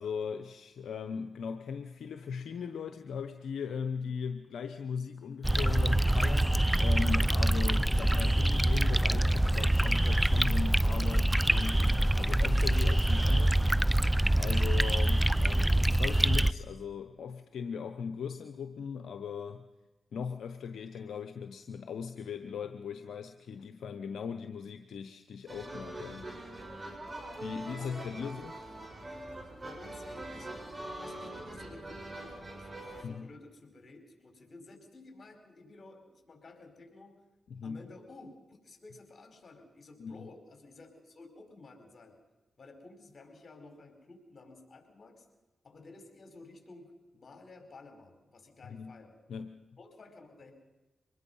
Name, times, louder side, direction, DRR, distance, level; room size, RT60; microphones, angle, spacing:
voice 1, 0.0-14.0 14.4-19.6 20.1-26.3 27.4-28.5 33.0-33.3 37.5-37.8 40.0-40.3 48.6-49.0 49.3-49.6, left 6 dB, 80° left, 8 dB, 0.9 m, -39 dB
sound 1, 5.4-16.5, right 1 dB, 10° right, 0.7 m, -25 dB
sound 2, 25.5-33.0, right 1 dB, 35° right, 6.4 m, -43 dB
voice 2, 27.4-28.3 29.6-30.5 30.8-37.2 37.6-42.2 42.6-45.2 45.6-49.2 49.8-50.5, left 2 dB, 55° left, 5 dB, 4.9 m, -53 dB
24.5 x 20.5 x 5.6 m, 1.1 s
supercardioid pair, 50°, 0 cm